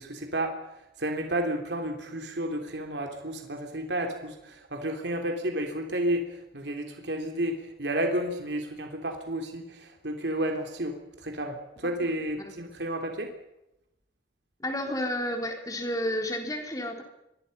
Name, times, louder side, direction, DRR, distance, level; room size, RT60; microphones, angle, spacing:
voice 1, 0.0-13.3, right 1 dB, 65° right, 3 dB, 3.3 m, -32 dB
voice 2, 14.6-17.0, left 1 dB, 20° left, 3 dB, 3.7 m, -31 dB
27.0 x 23.0 x 5.5 m, 0.88 s
head